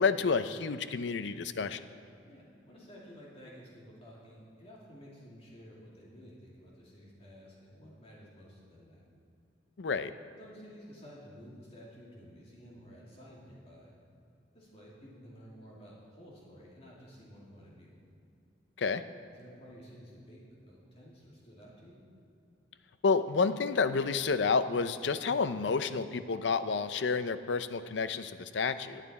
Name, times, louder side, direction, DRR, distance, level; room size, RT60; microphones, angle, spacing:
voice 1, 0.0-1.8 9.8-10.1 18.8-19.0 23.0-29.0, left 5 dB, 80° left, 12 dB, 0.5 m, -30 dB
voice 2, 2.3-9.0 10.4-13.9 14.5-17.9 19.3-22.0, equal, 35° left, -5 dB, 2.4 m, -52 dB
17.0 x 9.3 x 4.2 m, 2.6 s
head